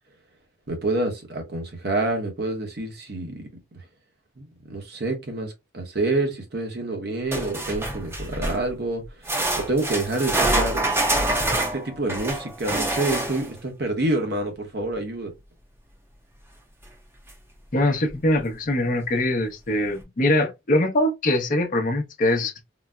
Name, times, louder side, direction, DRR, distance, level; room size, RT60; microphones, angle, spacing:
voice 1, 0.7-3.5 4.4-11.0 11.5-15.3, right 2 dB, 60° right, 0.9 m, -28 dB
sound 1, 7.3-8.7 9.2-13.6 16.8-16.9 17.3-17.4 18.1-18.2, right 1 dB, 15° right, 0.6 m, -26 dB
voice 2, 17.7-22.6, left 1 dB, 45° left, 0.7 m, -23 dB
3.9 x 2.1 x 2.3 m
head